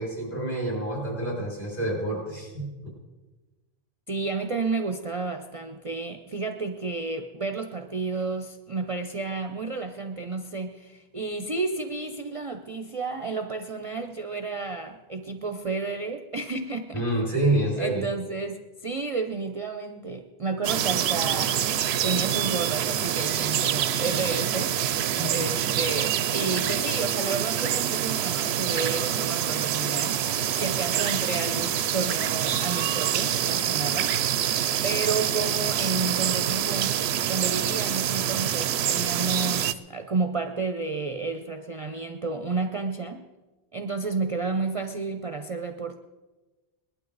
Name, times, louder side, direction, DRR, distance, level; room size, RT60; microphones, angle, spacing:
voice 1, 0.0-2.9 16.9-18.0 25.1-25.4, right 1 dB, 40° left, -4 dB, 6.8 m, -28 dB
voice 2, 4.1-17.0 17.8-21.6 22.0-24.8 25.3-34.2 34.5-37.0 37.3-43.3 43.7-46.0, right 3 dB, 35° right, 5 dB, 0.7 m, -31 dB
sound 1, 20.6-39.7, right 10 dB, 75° right, 0.8 m, -26 dB
20.5 x 12.0 x 4.0 m, 1.2 s
omnidirectional pair, 1.1 m